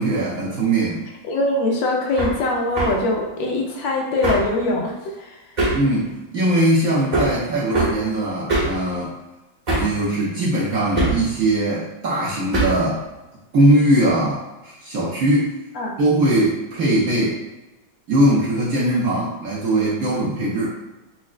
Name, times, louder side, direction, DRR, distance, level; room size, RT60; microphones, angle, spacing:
voice 1, 0.0-1.1 5.7-9.1 9.8-13.0 13.5-15.6 16.0-17.4 18.1-20.7, right 1 dB, 60° right, -7 dB, 1.0 m, -20 dB
voice 2, 1.2-5.4 15.8-15.9, left 2 dB, 80° left, 0 dB, 1.4 m, -22 dB
Hammer, 2.2-2.4 2.8-3.0 4.2-4.5 5.6-5.9 7.1-7.4 7.7-8.0 8.5-8.8 9.7-10.0 11.0-11.3 12.5-12.9, right 2 dB, 35° right, 0.7 m, -21 dB
5.9 x 2.1 x 2.4 m, 1.1 s
omnidirectional pair, 2.1 m